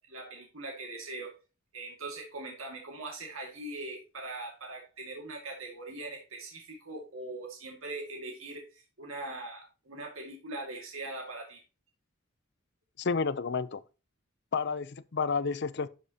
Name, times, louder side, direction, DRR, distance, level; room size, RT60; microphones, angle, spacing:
voice 1, 0.1-1.3 1.7-11.6, right 2 dB, 80° right, 2.1 m, -41 dB
voice 2, 13.0-13.8 14.5-15.9, left 5 dB, 55° left, 0.6 m, -30 dB
12.0 x 5.4 x 2.9 m
head